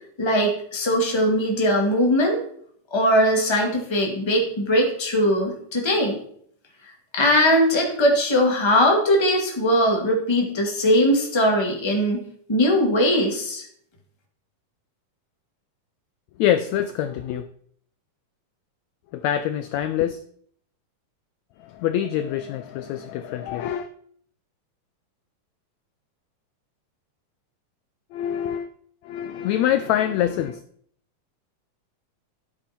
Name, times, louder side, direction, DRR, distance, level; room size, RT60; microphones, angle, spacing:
voice 1, 0.2-2.4 2.9-6.2 7.1-12.2 12.5-13.6, equal, 10° left, 1.6 m, -20 dB
voice 2, 16.4-17.5 19.1-20.2 21.6-23.9 28.1-28.7 29.0-30.6, left 11 dB, 85° left, 1.6 m, -25 dB
13.0 x 8.4 x 4.4 m
omnidirectional pair, 3.7 m